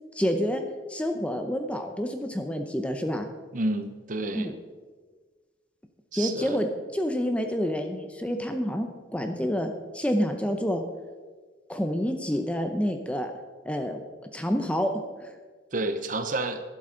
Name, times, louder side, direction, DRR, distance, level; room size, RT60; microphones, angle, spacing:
voice 1, 0.1-0.6 0.9-3.3 4.3-4.5 6.1-6.7 6.9-10.8 11.7-13.3 13.6-14.0 14.3-14.9 15.2-15.3, equal, 5° left, 5 dB, 0.6 m, -28 dB
voice 2, 3.5-4.5 6.1-6.6 15.7-16.6, right 2 dB, 40° right, 9 dB, 0.7 m, -30 dB
12.0 x 11.0 x 3.8 m, 1.4 s
head